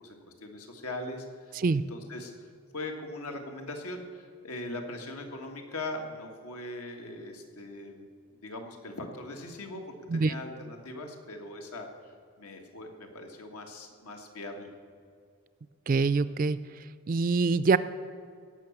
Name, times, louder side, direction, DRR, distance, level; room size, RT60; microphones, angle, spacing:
voice 1, 0.0-1.6 1.9-8.1 8.4-14.7, left 2 dB, 90° left, 3 dB, 1.7 m, -40 dB
voice 2, 15.9-16.6 17.1-17.8, right 4 dB, 40° right, 15 dB, 0.3 m, -24 dB
17.0 x 6.2 x 7.2 m, 2.2 s
head